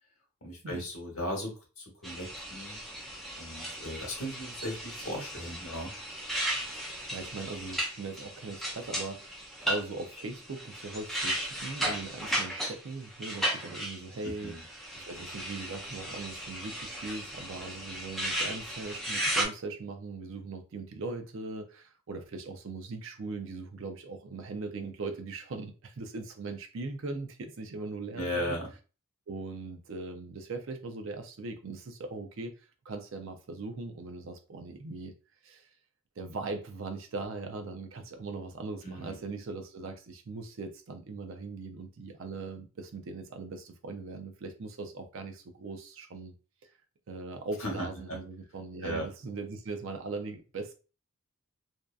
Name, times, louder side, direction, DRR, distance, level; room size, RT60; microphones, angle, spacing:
voice 1, 0.4-2.8 3.4-5.9 14.2-14.6 28.1-28.7 38.8-39.2 47.6-48.2 48.8-49.1, equal, 75° left, 1.0 m, -37 dB
sound 1, 2.0-19.5, equal, ahead, 0.4 m, -36 dB
voice 2, 6.7-14.6 14.9-28.6 29.3-32.6 32.9-35.1 35.4-35.7 36.2-46.3 46.6-46.7 47.1-50.7, right 3 dB, 60° right, 0.4 m, -40 dB
2.6 x 2.3 x 2.3 m
head